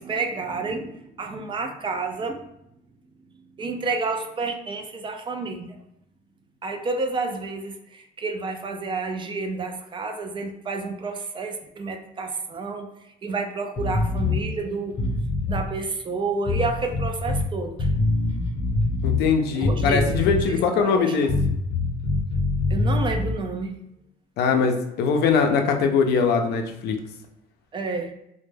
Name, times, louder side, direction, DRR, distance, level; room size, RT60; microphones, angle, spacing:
voice 1, 0.0-2.4 3.6-5.8 6.6-12.9 13.2-14.9 15.5-17.9 19.5-21.1 22.7-23.8 27.7-28.1, right 3 dB, 30° right, 4 dB, 0.3 m, -30 dB
sound 1, 13.8-14.4 14.9-15.7 16.5-17.5 17.8-19.3 19.6-20.6 21.3-23.4, left 2 dB, 35° left, 0.7 m, -24 dB
voice 2, 19.0-21.3 24.4-27.0, left 5 dB, 75° left, 4 dB, 0.4 m, -21 dB
2.1 x 2.1 x 3.1 m, 0.80 s
cardioid pair, 110°, 17 cm